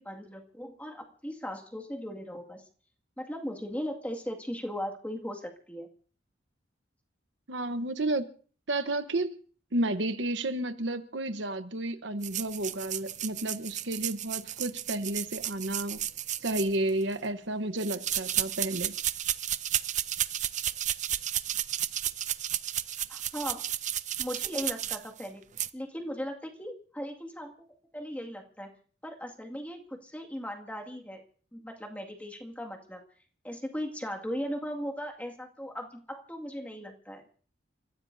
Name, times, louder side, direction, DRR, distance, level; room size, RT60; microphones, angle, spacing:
voice 1, 0.0-2.6 3.2-5.9 23.1-23.7 24.2-25.4 25.7-27.5 27.9-28.7 29.0-31.2 31.5-33.0 33.4-37.2, equal, 10° left, 2.1 m, -38 dB
voice 2, 7.5-8.3 8.7-9.4 9.7-16.0 16.4-18.9, right 1 dB, 70° right, 1.1 m, -31 dB
sound 1, 12.2-17.1 17.8-25.3 25.6-25.7, right 11 dB, 40° right, 0.6 m, -33 dB
30.0 x 15.0 x 2.7 m
head